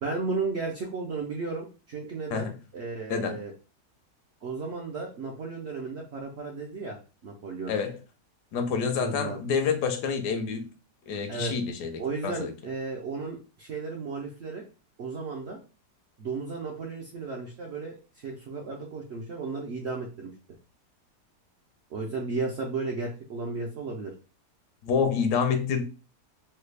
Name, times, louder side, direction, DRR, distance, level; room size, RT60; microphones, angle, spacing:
voice 1, 0.0-3.5 4.4-7.0 7.2-7.7 9.0-9.4 11.3-11.5 12.0-14.6 15.0-15.6 16.2-20.3 21.9-24.1, right 4 dB, 65° right, 0.6 m, -34 dB
voice 2, 3.1-3.4 7.7-8.0 8.5-10.6 11.1-12.5 24.8-25.8, left 6 dB, 80° left, 1.2 m, -28 dB
3.2 x 2.3 x 3.2 m
omnidirectional pair, 1.8 m